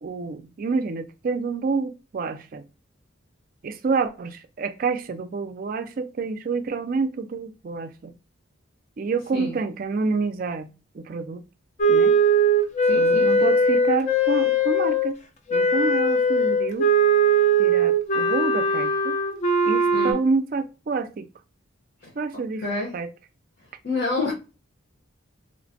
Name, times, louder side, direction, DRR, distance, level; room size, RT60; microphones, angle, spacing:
voice 1, 0.0-2.6 3.6-8.1 9.0-11.4 11.9-12.2 13.0-15.2 15.5-16.9 17.6-19.2 19.6-21.3 22.2-22.6 22.9-23.1, right 4 dB, 45° right, 0.3 m, -28 dB
Wind instrument woodwind instrument, 11.8-15.1 15.5-20.1, right 2 dB, 35° left, 0.4 m, -20 dB
voice 2, 12.8-13.5 19.9-20.2 22.0-22.1 22.6-22.9 23.8-24.3, left 3 dB, 50° left, 1.0 m, -28 dB
3.1 x 2.1 x 2.6 m
head